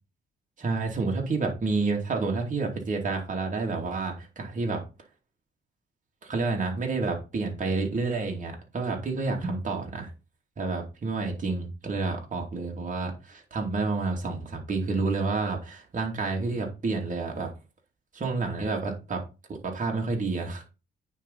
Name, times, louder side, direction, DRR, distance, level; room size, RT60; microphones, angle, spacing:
voice 1, 0.6-4.8 6.2-10.1 10.6-17.5 18.1-19.2 19.5-20.6, right 3 dB, 40° right, 2.7 m, -29 dB
9.0 x 4.0 x 5.6 m
cardioid pair, 90°, 20 cm